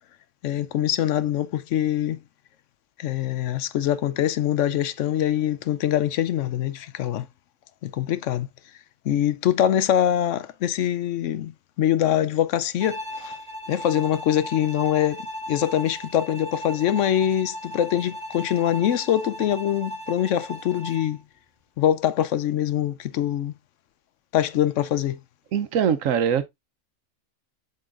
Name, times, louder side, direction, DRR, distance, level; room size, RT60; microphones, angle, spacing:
voice 1, 0.4-2.2 3.0-7.3 7.8-8.5 9.0-13.4 13.7-21.2 21.8-23.5 24.3-25.2, left 11 dB, 75° left, 0.9 m, -24 dB
Bowed string instrument, 12.8-21.2, equal, 30° right, 1.5 m, -36 dB
voice 2, 25.5-26.5, right 8 dB, 75° right, 1.1 m, -22 dB
7.8 x 5.5 x 2.5 m
omnidirectional pair, 1.4 m